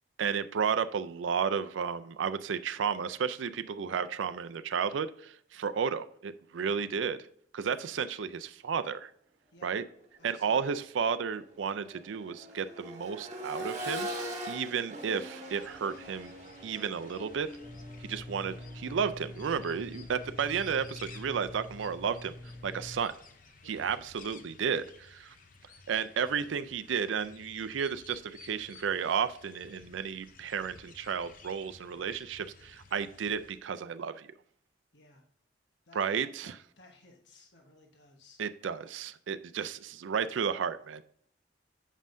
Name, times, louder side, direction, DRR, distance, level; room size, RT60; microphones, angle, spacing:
voice 1, 0.2-7.2 7.5-9.1 9.6-9.8 10.2-16.3 16.6-17.5 18.0-22.3 22.6-23.1 23.6-25.3 25.9-34.3 35.9-36.6 38.4-41.0, right 6 dB, 75° right, 0.4 m, -33 dB
voice 2, 10.2-10.6 22.8-23.0 23.6-23.9 34.9-35.2 35.9-38.4, left 2 dB, 60° left, 1.1 m, -58 dB
Accelerating revving vroom, 10.2-10.3 10.8-20.7 22.4-22.5, equal, 40° right, 1.3 m, -43 dB
sound 1, 15.5-33.6, left 4 dB, 45° left, 0.7 m, -55 dB
sound 2, 17.6-23.0, left 2 dB, 15° left, 1.3 m, -46 dB
7.3 x 5.4 x 2.6 m
head